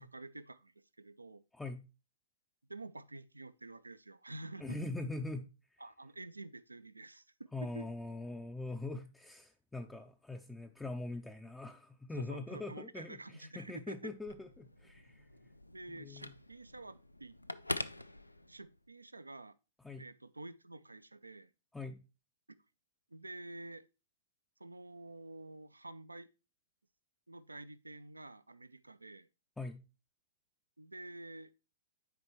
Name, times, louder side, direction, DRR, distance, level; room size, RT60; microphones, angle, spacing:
voice 1, 0.0-1.4 2.7-4.8 5.8-7.8 12.2-14.1 15.6-17.3 18.5-19.6 20.0-21.5 23.1-23.8 24.6-26.3 27.3-29.3 30.8-31.5, right 2 dB, 85° right, 0.3 m, -49 dB
voice 2, 1.5-1.9 4.6-5.5 7.5-15.3 15.9-16.3 19.8-20.1 21.7-22.0 29.6-29.8, left 2 dB, 5° left, 0.4 m, -42 dB
Telephone, 14.1-18.9, left 1 dB, 90° left, 0.3 m, -45 dB
9.5 x 4.4 x 3.0 m
figure-of-eight pair, 110°, 0 cm